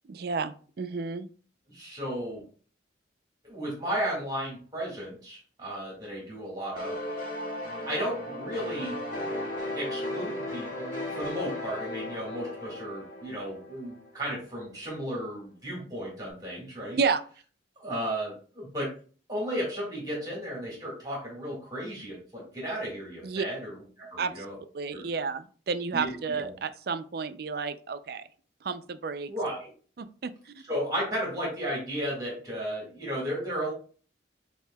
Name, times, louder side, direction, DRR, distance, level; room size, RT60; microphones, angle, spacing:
voice 1, 0.1-1.3 17.0-17.2 23.2-23.5 24.2-24.5 24.7-28.3 28.6-29.3 30.0-30.3, right 5 dB, 55° right, 11 dB, 0.4 m, -31 dB
voice 2, 1.7-2.4 3.4-7.0 7.8-9.0 9.7-17.0 17.8-18.9 19.3-24.6 24.9-25.0 25.9-26.5 29.3-29.7 30.6-33.7, equal, 20° right, -3 dB, 1.7 m, -34 dB
sound 1, 6.8-14.2, left 1 dB, 45° left, 1.7 m, -36 dB
7.9 x 2.8 x 2.2 m, 0.40 s
head